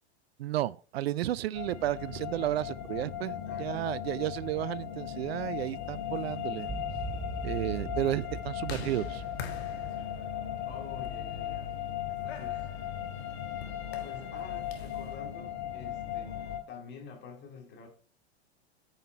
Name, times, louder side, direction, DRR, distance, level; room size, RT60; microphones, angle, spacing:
voice 1, 0.4-6.7 7.4-9.2, right 14 dB, 65° right, 0.5 m, -32 dB
sound 1, 1.5-16.6, left 10 dB, 45° left, 2.3 m, -37 dB
voice 2, 3.4-4.0 10.6-11.7 12.4-12.8 14.0-17.9, left 5 dB, 30° left, 2.3 m, -48 dB
sound 2, 6.0-15.1, left 7 dB, 70° left, 1.7 m, -48 dB
sound 3, 6.7-12.0, right 3 dB, 25° right, 1.1 m, -41 dB
8.9 x 5.6 x 4.5 m
hypercardioid pair, 100°, 33 cm